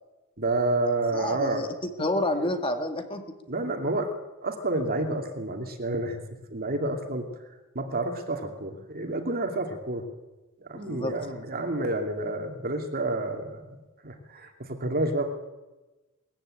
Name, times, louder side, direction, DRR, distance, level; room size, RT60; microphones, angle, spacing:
voice 1, 0.4-1.6 3.5-4.1 4.4-6.2 6.5-7.3 7.7-10.1 10.6-13.8 14.0-15.2, right 2 dB, 45° right, 4 dB, 2.6 m, -29 dB
voice 2, 1.1-1.7 2.0-3.2 10.9-11.1, left 1 dB, 25° left, 6 dB, 2.0 m, -28 dB
21.0 x 14.5 x 8.9 m, 1.1 s
head